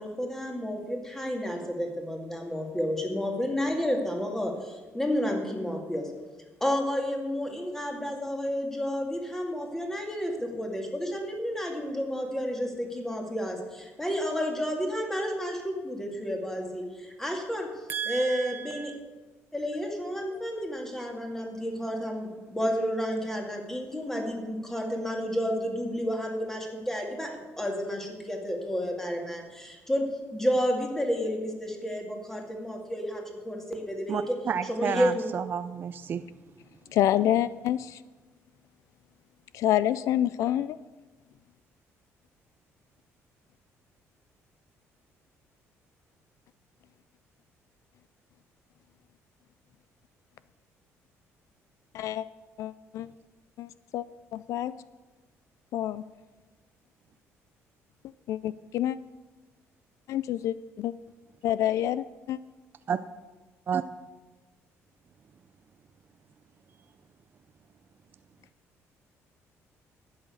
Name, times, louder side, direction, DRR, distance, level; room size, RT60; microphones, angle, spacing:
voice 1, 0.0-6.1 6.6-17.7 18.0-18.9 19.5-35.3, equal, 5° left, 2 dB, 2.2 m, -31 dB
voice 2, 17.9-18.9 34.1-34.2 34.5-36.2 62.9-63.0 63.7-63.8, right 7 dB, 40° right, 11 dB, 0.4 m, -31 dB
voice 3, 36.9-38.0 39.5-40.8 51.9-52.3 52.6-53.1 53.6-54.1 54.3-54.7 55.7-56.0 58.3-59.0 60.1-60.9 61.4-62.4, left 12 dB, 70° left, 16 dB, 0.3 m, -27 dB
12.0 x 9.0 x 6.4 m, 1.3 s
cardioid pair, 125°, 5 cm